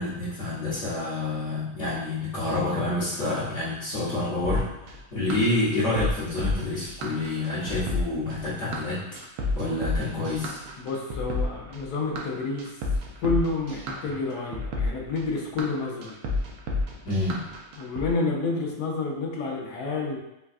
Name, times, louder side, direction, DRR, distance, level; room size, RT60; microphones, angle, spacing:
voice 1, 0.0-9.0 9.5-10.6 17.0-17.4, left 2 dB, 55° left, -11 dB, 1.3 m, -28 dB
sound 1, 4.4-18.1, left 2 dB, 75° right, 1.1 m, -31 dB
voice 2, 10.8-12.7 13.2-16.2 17.8-20.2, left 3 dB, 85° left, 0 dB, 1.2 m, -29 dB
4.3 x 2.3 x 2.4 m, 0.88 s
omnidirectional pair, 1.7 m